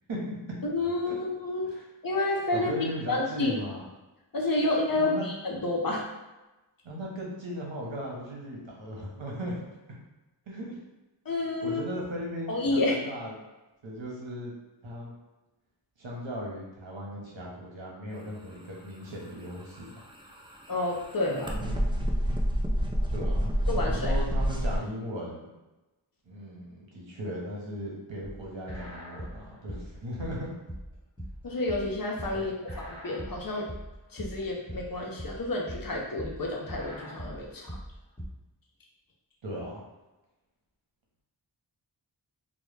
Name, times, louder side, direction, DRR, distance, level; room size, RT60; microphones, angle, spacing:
voice 1, 0.7-1.8 2.0-2.7 3.1-3.5 4.3-6.1 11.3-11.8 12.5-13.0 20.7-21.6 23.7-24.1 31.4-33.7 34.1-37.7, left 2 dB, 50° left, -1 dB, 0.6 m, -29 dB
voice 2, 2.5-3.8 4.9-5.2 6.8-9.6 10.5-10.8 11.6-13.3 13.8-14.5 14.8-15.1 16.0-19.9 21.4-21.9 23.1-25.5 26.3-30.5 32.3-32.5 39.4-39.8, equal, 80° right, -3 dB, 0.8 m, -37 dB
sound 1, 19.6-24.8, equal, 15° right, 0.3 m, -28 dB
sound 2, 28.2-38.3, equal, 10° left, 1.1 m, -41 dB
2.1 x 2.1 x 3.1 m, 1.1 s
wide cardioid pair, 40°, 44 cm